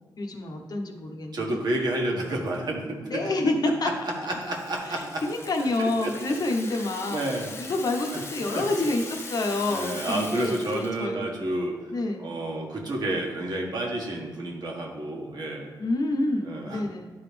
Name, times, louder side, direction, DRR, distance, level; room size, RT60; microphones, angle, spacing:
voice 1, 0.2-1.6 2.1-2.4 3.1-3.9 4.8-11.2 11.9-12.3 15.8-17.1, left 2 dB, 55° left, 3 dB, 1.0 m, -28 dB
voice 2, 1.3-3.2 4.2-5.2 5.8-6.1 7.1-7.7 8.1-8.2 8.5-8.6 9.7-11.8 12.2-15.7 16.4-16.8, right 1 dB, 60° right, 0 dB, 1.4 m, -30 dB
Rattle (instrument), 4.1-11.0, left 3 dB, 30° left, 0.9 m, -41 dB
10.5 x 3.9 x 3.4 m, 1.5 s
cardioid pair, 85°, 8 cm